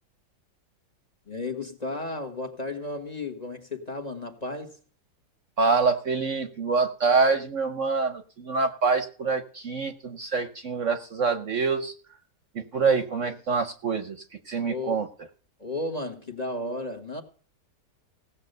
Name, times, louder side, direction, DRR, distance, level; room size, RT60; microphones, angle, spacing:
voice 1, 1.3-4.8 14.6-15.0 15.6-17.2, left 2 dB, 25° left, 1.5 m, -33 dB
voice 2, 5.6-11.9 12.5-14.2 14.5-15.1, right 4 dB, 50° right, 1.1 m, -25 dB
17.0 x 7.5 x 6.6 m
omnidirectional pair, 1.8 m